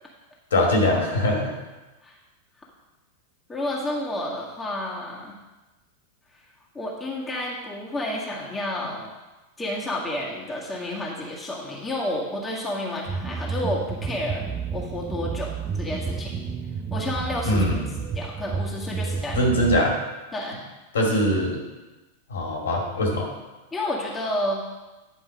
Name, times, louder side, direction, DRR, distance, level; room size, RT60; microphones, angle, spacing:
voice 1, 0.5-1.5 17.4-17.8 19.3-20.0 20.9-21.6 22.3-23.3, left 1 dB, 65° left, -1 dB, 2.4 m, -22 dB
voice 2, 3.5-5.4 6.7-9.1 9.6-14.5 14.7-15.5 15.8-16.3 16.9-17.8 18.1-19.5 20.3-20.6 23.7-24.6, left 1 dB, 10° left, -4 dB, 1.8 m, -30 dB
sound 1, 13.1-19.9, right 5 dB, 20° right, 0.6 m, -31 dB
10.0 x 5.2 x 5.2 m, 1.1 s
figure-of-eight pair, 90°, 0 cm